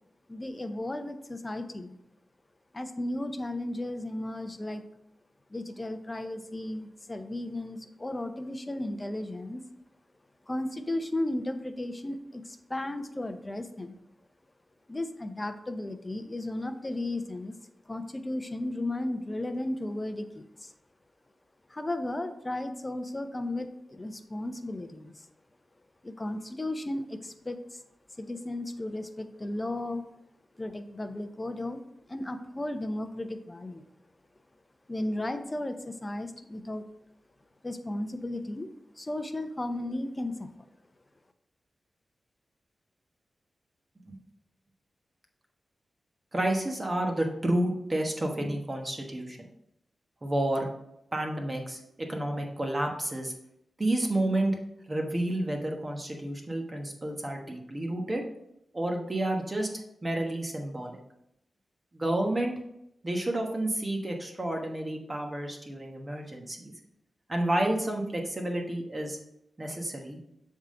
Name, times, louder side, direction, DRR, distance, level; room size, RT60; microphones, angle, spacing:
voice 1, 0.3-1.9 2.7-4.8 5.5-9.6 10.5-14.0 14.9-17.5 17.9-20.7 21.7-25.3 26.0-27.8 28.2-30.0 30.6-33.8 34.9-36.8 37.6-40.5, left 1 dB, 25° left, 8 dB, 0.6 m, -35 dB
voice 2, 46.3-49.5 50.2-50.7 51.1-53.3 53.8-54.5 54.9-58.2 58.7-59.7 60.0-61.0 61.9-62.5 63.0-66.7 67.3-69.2 69.6-70.2, right 1 dB, 30° right, 2 dB, 1.1 m, -30 dB
7.1 x 3.6 x 3.8 m, 0.80 s
cardioid pair, 80°, 0 cm